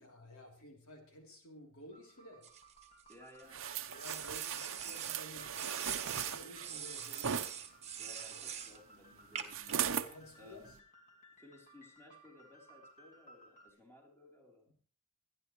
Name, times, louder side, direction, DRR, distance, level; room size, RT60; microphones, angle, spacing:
voice 1, 0.0-2.5 3.9-7.9 9.7-10.8, left 1 dB, 70° left, 1 dB, 3.3 m, -54 dB
sound 1, 1.9-13.7, equal, 35° left, 2.4 m, -60 dB
sound 2, 2.4-3.4 4.0-5.2 5.5-8.8 9.4-9.7, right 8 dB, 30° right, 1.4 m, -43 dB
voice 2, 3.1-3.6 4.4-5.0 8.0-9.8 10.4-10.7 11.4-14.7, left 2 dB, 10° left, -1 dB, 3.6 m, -59 dB
sound 3, 3.5-7.5 9.5-10.1 10.7-10.8, right 8 dB, 60° right, 0.8 m, -38 dB
24.5 x 10.5 x 3.2 m, 0.44 s
head